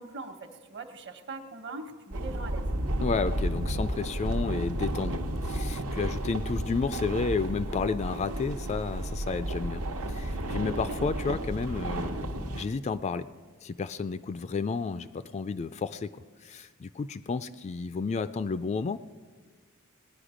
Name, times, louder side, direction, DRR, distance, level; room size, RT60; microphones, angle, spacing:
voice 1, 0.0-2.6, right 3 dB, 55° right, 7 dB, 1.2 m, -41 dB
sound 1, 2.1-12.6, right 1 dB, 75° right, 1.0 m, -32 dB
voice 2, 3.0-13.3 13.6-16.2 16.4-19.0, left 4 dB, 30° left, 13 dB, 0.3 m, -32 dB
19.0 x 10.5 x 5.0 m, 1.5 s
head